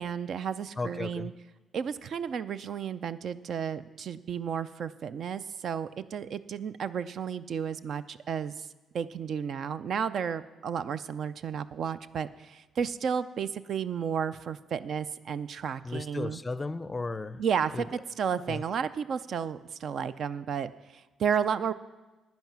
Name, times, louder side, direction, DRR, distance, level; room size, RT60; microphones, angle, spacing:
voice 1, 0.0-1.3 1.7-8.7 8.9-16.4 17.4-21.7, right 7 dB, 60° right, 14 dB, 0.4 m, -32 dB
voice 2, 0.8-1.3 15.8-17.4 17.7-17.8 18.5-18.6, left 3 dB, 20° left, 15 dB, 0.5 m, -35 dB
10.5 x 9.4 x 6.0 m, 1.2 s
cardioid pair, 90°, 0 cm